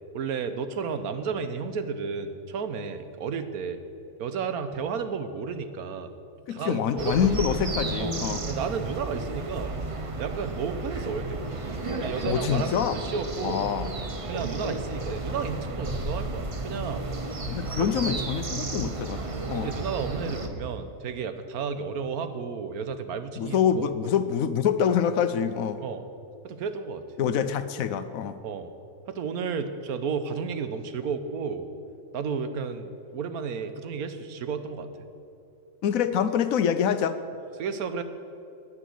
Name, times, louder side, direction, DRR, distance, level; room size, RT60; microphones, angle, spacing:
voice 1, 0.1-3.8 4.2-6.1 6.5-7.4 8.0-8.1 8.5-9.8 10.2-11.6 12.0-13.7 14.3-17.1 18.1-18.2 19.6-24.1 25.8-26.0 26.4-27.0 28.4-28.7 29.1-31.7 32.1-34.9 37.6-38.0, right 5 dB, 75° right, 10 dB, 1.3 m, -32 dB
voice 2, 6.5-8.4 12.3-13.0 13.4-13.9 17.4-19.7 23.4-25.8 27.2-28.4 35.8-37.2, left 8 dB, 70° left, 11 dB, 1.1 m, -26 dB
sound 1, 7.0-20.5, right 2 dB, 30° right, 0.7 m, -33 dB
10.0 x 9.3 x 9.3 m, 2.6 s
omnidirectional pair, 1.6 m